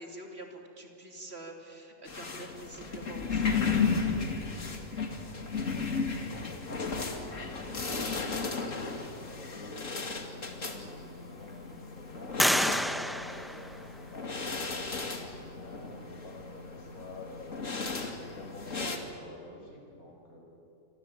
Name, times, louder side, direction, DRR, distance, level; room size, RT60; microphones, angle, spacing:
voice 1, 0.0-3.8, right 1 dB, 45° right, 2 dB, 3.5 m, -46 dB
sound 1, 2.1-19.0, left 4 dB, 65° left, 2.6 m, -34 dB
voice 2, 5.5-8.6 9.2-17.7 18.2-20.4, left 2 dB, 90° left, 1 dB, 6.3 m, -49 dB
sound 2, 10.8-11.5 12.4-14.3, equal, ahead, 0.5 m, -30 dB
25.5 x 25.5 x 9.0 m, 2.9 s
omnidirectional pair, 1.5 m